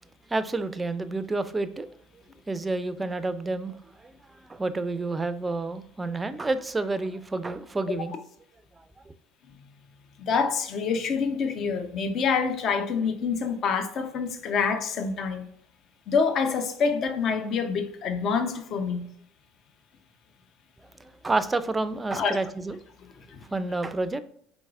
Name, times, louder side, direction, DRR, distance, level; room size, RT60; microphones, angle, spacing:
voice 1, 0.3-1.9 2.5-4.1 4.5-8.1 9.1-9.2 21.0-22.8 23.5-24.2, right 3 dB, 20° right, 0.4 m, -29 dB
voice 2, 10.2-15.5 16.1-19.1 22.1-22.4 23.3-23.5, left 5 dB, 45° left, 0.6 m, -26 dB
4.6 x 3.9 x 2.4 m
figure-of-eight pair, 65°, 0 cm